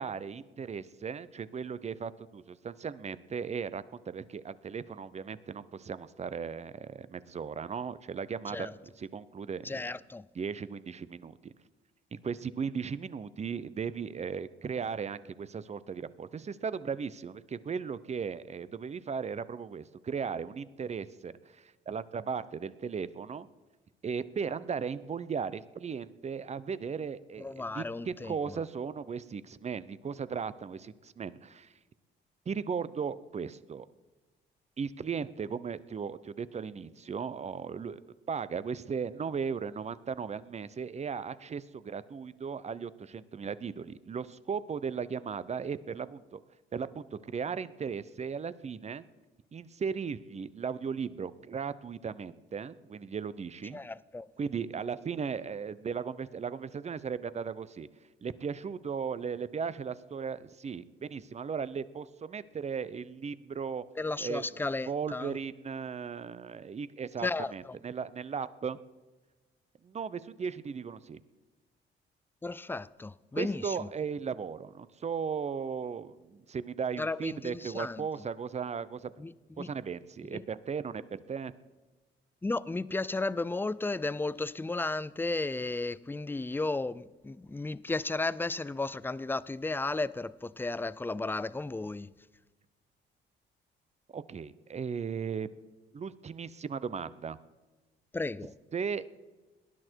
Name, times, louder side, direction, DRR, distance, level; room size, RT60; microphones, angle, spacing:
voice 1, 0.0-9.8 10.3-11.5 12.1-23.5 24.0-31.7 32.5-33.9 34.8-38.0 38.3-46.4 46.7-49.0 49.5-53.8 54.4-57.9 58.2-63.8 64.2-68.8 69.8-71.2 73.3-79.1 79.6-81.5 94.1-95.6 95.9-97.4 98.7-99.1, right 6 dB, 35° right, 0.7 m, -37 dB
voice 2, 9.6-10.2 27.4-28.4 53.7-54.3 64.0-65.3 67.2-67.7 72.4-73.9 77.0-78.0 79.2-79.7 80.3-80.4 82.4-92.1 98.1-98.5, left 3 dB, 10° left, 0.4 m, -34 dB
18.5 x 11.0 x 4.6 m
cardioid pair, 90°, 20 cm